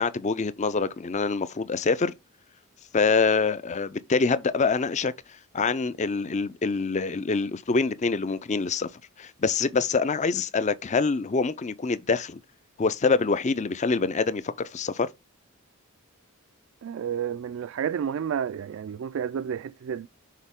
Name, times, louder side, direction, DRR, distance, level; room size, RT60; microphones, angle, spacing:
voice 1, 0.0-2.1 2.9-5.1 5.5-8.9 9.2-12.4 12.8-15.1, left 4 dB, 30° left, 0.5 m, -25 dB
voice 2, 16.8-20.1, right 8 dB, 60° right, 0.3 m, -31 dB
6.5 x 4.0 x 3.6 m
head